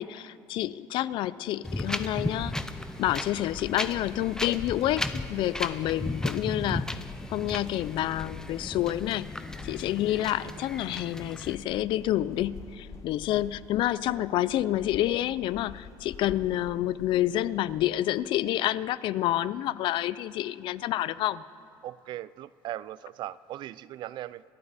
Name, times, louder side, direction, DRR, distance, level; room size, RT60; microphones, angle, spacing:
voice 1, 0.0-2.5 3.0-6.9 7.3-9.3 9.6-21.4, left 13 dB, 65° left, 18 dB, 0.4 m, -28 dB
Wind, 1.6-11.5, left 1 dB, 5° left, 0.6 m, -35 dB
sound 1, 1.7-17.9, left 6 dB, 35° left, 0.9 m, -47 dB
voice 2, 21.8-24.4, right 13 dB, 55° right, 19 dB, 0.4 m, -39 dB
27.0 x 11.5 x 4.1 m, 2.3 s
cardioid pair, 130°, 9 cm